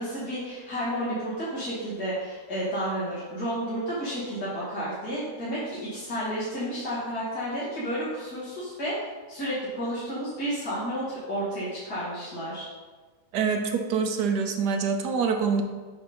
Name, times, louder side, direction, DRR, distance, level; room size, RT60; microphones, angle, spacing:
voice 1, 0.0-8.9 9.3-12.7, equal, 75° left, -11 dB, 2.7 m, -31 dB
voice 2, 13.3-15.6, right 5 dB, 90° right, 5 dB, 1.4 m, -25 dB
8.6 x 3.7 x 5.6 m, 1.4 s
omnidirectional pair, 1.7 m